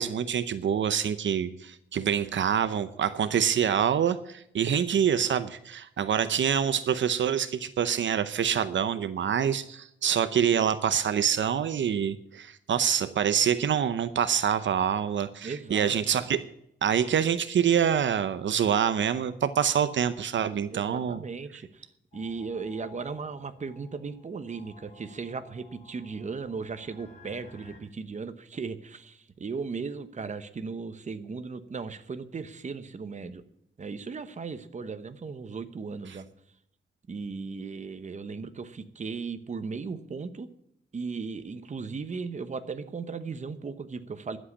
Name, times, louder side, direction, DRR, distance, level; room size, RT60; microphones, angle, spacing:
voice 1, 0.0-16.4 16.8-21.2, right 8 dB, 75° right, 12 dB, 0.7 m, -26 dB
voice 2, 15.4-16.0 20.7-21.8 22.1-33.4 33.8-36.3 37.1-40.5 40.9-44.4, right 4 dB, 40° right, 10 dB, 1.0 m, -37 dB
sound 1, 22.1-27.8, left 3 dB, 35° left, 4.6 m, -55 dB
11.5 x 7.7 x 9.6 m, 0.75 s
wide cardioid pair, 130°, 19 cm